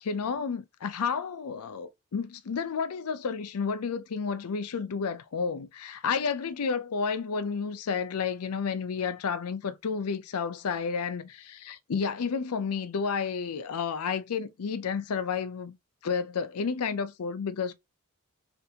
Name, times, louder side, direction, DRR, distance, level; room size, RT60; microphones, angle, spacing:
voice 1, 0.0-15.8 16.0-17.7, left 5 dB, 85° left, 0.5 m, -31 dB
3.4 x 2.6 x 2.8 m
head